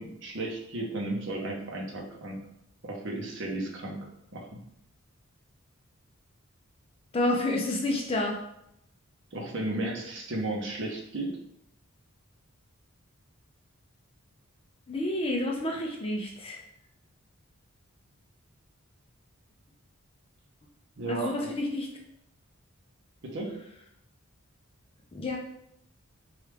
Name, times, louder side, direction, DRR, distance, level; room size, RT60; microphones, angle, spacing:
voice 1, 0.0-2.4 2.8-4.0 4.3-4.6 9.3-11.3 21.0-21.5 23.2-23.5, right 2 dB, 55° right, -1 dB, 0.6 m, -34 dB
voice 2, 7.1-8.4 14.9-16.6 21.1-21.9 25.1-25.4, left 1 dB, 25° left, 0 dB, 0.4 m, -29 dB
3.2 x 2.3 x 3.2 m, 0.79 s
head